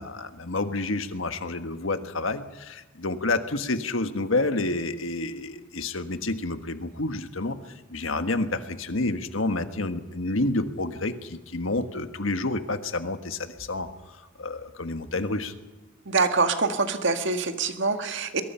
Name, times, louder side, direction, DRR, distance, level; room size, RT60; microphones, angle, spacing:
voice 1, 0.0-7.6 7.9-15.5, left 2 dB, 75° left, 9 dB, 1.5 m, -29 dB
voice 2, 16.1-18.4, right 4 dB, 65° right, 7 dB, 1.9 m, -25 dB
22.5 x 22.0 x 5.7 m, 1.1 s
head